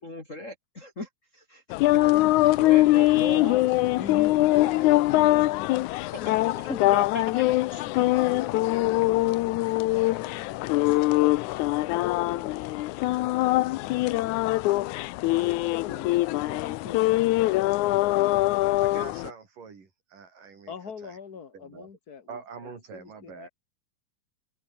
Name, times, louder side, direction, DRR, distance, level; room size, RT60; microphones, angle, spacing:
voice 1, 0.0-1.6 2.7-3.5 6.2-7.2 7.7-7.8 12.3-12.5, left 1 dB, 25° left, 3.0 m, -38 dB
sound 1, 1.7-19.3, left 18 dB, 75° left, 2.0 m, -23 dB
voice 2, 1.9-2.2 2.5-5.7 6.2-6.9 7.8-10.5 15.8-17.2 20.7-23.5, left 6 dB, 40° left, 1.5 m, -42 dB
voice 3, 18.8-21.2 21.5-21.9 22.3-23.5, right 5 dB, 80° right, 6.0 m, -44 dB
open air
omnidirectional pair, 3.7 m